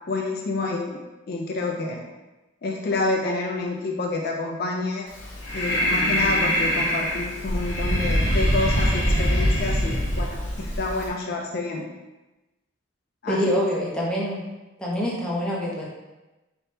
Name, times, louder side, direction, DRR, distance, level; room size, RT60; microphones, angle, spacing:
voice 1, 0.1-1.0 1.3-2.0 2.6-5.1 5.5-11.9 13.2-13.6, left 3 dB, 50° left, -1 dB, 0.4 m, -28 dB
Breathing, 5.1-11.1, equal, 75° left, 1.0 m, -23 dB
voice 2, 13.3-14.4 14.8-15.9, equal, 5° left, -5 dB, 0.7 m, -25 dB
4.0 x 3.5 x 2.7 m, 1.1 s
head